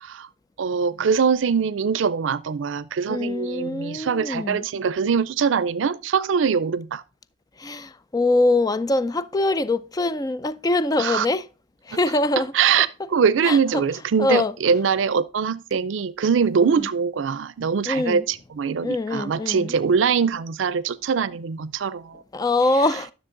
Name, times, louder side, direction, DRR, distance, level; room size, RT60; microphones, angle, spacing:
voice 1, 0.6-7.0 11.0-11.3 12.5-22.2, right 6 dB, 90° right, 0.4 m, -23 dB
voice 2, 3.1-4.7 7.6-11.4 11.9-12.5 13.4-13.8 14.2-14.5 16.7-16.9 17.9-18.2 18.8-19.8 22.3-23.1, left 2 dB, 20° left, 0.4 m, -23 dB
10.5 x 6.5 x 3.8 m
head